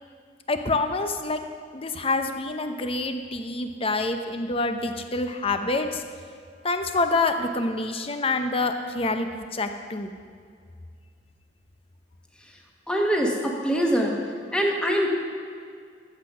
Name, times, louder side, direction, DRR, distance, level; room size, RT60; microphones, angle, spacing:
voice 1, 0.5-1.4 1.7-6.0 6.6-10.1, left 3 dB, 35° left, 7 dB, 0.8 m, -27 dB
voice 2, 12.9-14.1 14.5-15.1, equal, 5° left, 0 dB, 1.5 m, -23 dB
12.5 x 7.9 x 6.1 m, 2.1 s
head